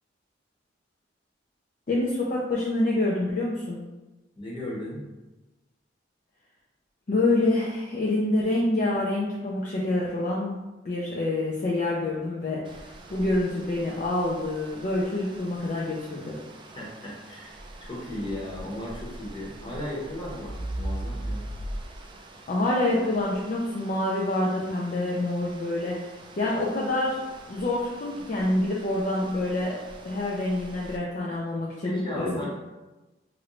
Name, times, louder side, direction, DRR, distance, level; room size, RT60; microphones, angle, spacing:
voice 1, 1.9-3.8 7.1-10.5 10.8-12.8 13.1-16.4 22.5-26.1 26.4-27.2 27.5-29.7 30.0-32.5, left 2 dB, 45° left, -4 dB, 0.4 m, -26 dB
voice 2, 4.4-5.0 16.8-21.5 31.8-32.5, left 1 dB, 25° left, -5 dB, 0.9 m, -36 dB
sound 1, 12.6-31.0, right 1 dB, 25° right, 0.3 m, -41 dB
3.0 x 2.5 x 3.0 m, 1.1 s
head